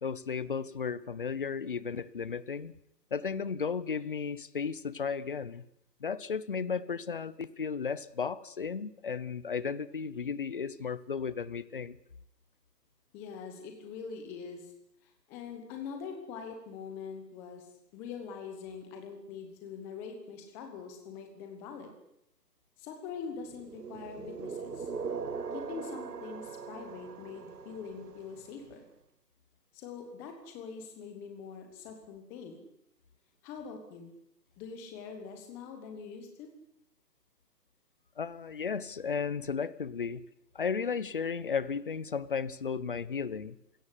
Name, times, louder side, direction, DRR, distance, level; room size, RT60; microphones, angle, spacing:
voice 1, 0.0-2.7 3.1-5.7 6.0-12.0 38.2-40.2 40.5-43.6, left 6 dB, 30° left, 18 dB, 0.9 m, -34 dB
voice 2, 13.1-14.7 15.0-17.7 17.9-21.9 22.8-24.9 25.5-28.9 29.7-32.6 33.4-34.1 34.6-36.5, left 6 dB, 5° left, 4 dB, 1.1 m, -43 dB
sound 1, 23.5-28.5, right 5 dB, 65° right, 2.1 m, -40 dB
27.0 x 17.0 x 9.9 m, 0.79 s
hypercardioid pair, 165°, 50 cm